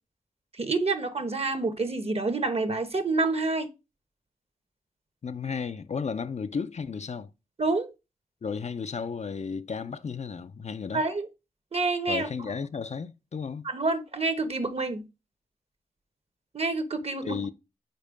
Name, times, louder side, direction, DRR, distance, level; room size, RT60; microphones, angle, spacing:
voice 1, 0.6-3.7 7.6-7.9 10.9-11.3 11.7-12.3 13.6-15.1 16.5-17.4, right 3 dB, 45° right, 1.0 m, -28 dB
voice 2, 5.2-7.3 8.4-11.0 12.1-13.7 17.2-17.5, left 5 dB, 50° left, 0.4 m, -33 dB
5.2 x 4.4 x 5.0 m
wide cardioid pair, 65°, 15 cm